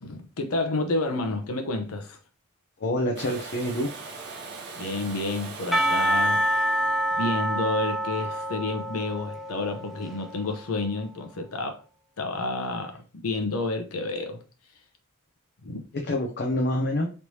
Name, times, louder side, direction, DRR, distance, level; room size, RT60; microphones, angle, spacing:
voice 1, 0.0-2.2 4.8-6.4 7.2-11.8 12.2-14.4 15.6-15.8, left 2 dB, 85° left, 0.7 m, -30 dB
voice 2, 2.8-3.9 8.3-8.4 16.0-17.1, left 1 dB, 50° left, 0.5 m, -27 dB
Domestic sounds home sounds, 3.2-9.0 10.9-11.0, right 4 dB, 55° right, 0.7 m, -42 dB
Percussion, 5.7-10.6, right 1 dB, ahead, 0.4 m, -27 dB
3.3 x 3.1 x 2.7 m
head